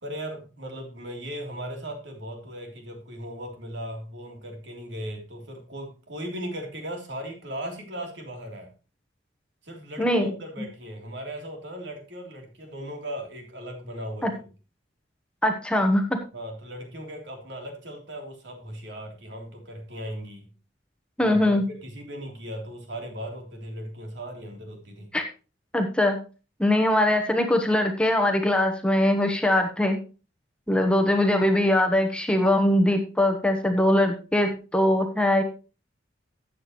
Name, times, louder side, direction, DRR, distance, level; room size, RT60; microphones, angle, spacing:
voice 1, 0.0-8.7 9.6-14.5 16.3-20.5 21.2-25.1 30.7-30.8, equal, 65° right, 2 dB, 3.4 m, -37 dB
voice 2, 10.0-10.3 14.2-14.3 15.4-16.2 21.2-21.6 25.1-25.2 25.7-26.2 26.6-30.0 30.7-35.4, left 1 dB, 5° left, 3 dB, 1.1 m, -22 dB
13.5 x 8.7 x 3.1 m, 0.34 s
head